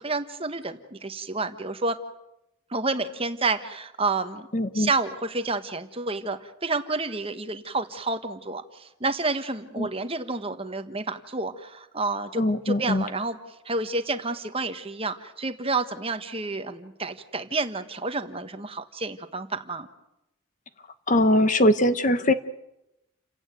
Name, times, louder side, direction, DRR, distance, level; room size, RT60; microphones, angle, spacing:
voice 1, 0.0-2.0 2.7-4.5 4.7-13.4 13.6-19.9, right 3 dB, 25° right, 9 dB, 1.3 m, -29 dB
voice 2, 4.5-4.9 9.8-9.9 12.4-13.0 21.1-22.3, left 1 dB, 35° left, 11 dB, 1.0 m, -21 dB
29.5 x 16.0 x 9.1 m, 0.89 s
head